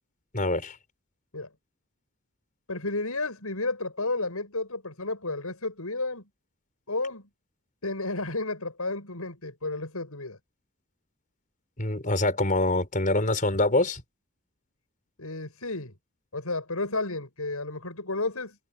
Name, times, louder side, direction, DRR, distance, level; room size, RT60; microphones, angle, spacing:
voice 1, 0.3-0.7 11.8-14.0, left 2 dB, 40° left, 5.1 m, -25 dB
voice 2, 2.7-6.3 6.9-7.2 7.8-10.4 15.2-15.9 16.3-18.6, left 2 dB, 85° left, 7.2 m, -32 dB
head